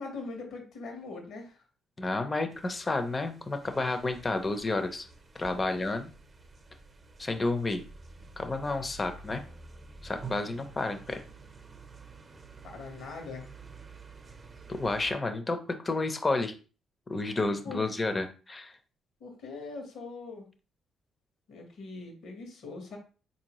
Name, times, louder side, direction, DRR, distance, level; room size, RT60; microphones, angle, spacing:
voice 1, 0.0-1.6 12.6-13.5 17.5-18.0 19.2-20.4 21.5-23.0, left 3 dB, 75° left, 2 dB, 1.3 m, -42 dB
voice 2, 2.0-5.1 5.3-6.1 7.2-7.9 8.4-9.4 10.0-11.2 14.8-15.6 15.8-16.5 17.1-18.7, left 2 dB, 25° left, 8 dB, 0.6 m, -30 dB
sound 1, 2.5-15.1, right 4 dB, 35° right, 0.7 m, -49 dB
4.1 x 2.7 x 3.0 m, 0.35 s
cardioid pair, 90°, 0 cm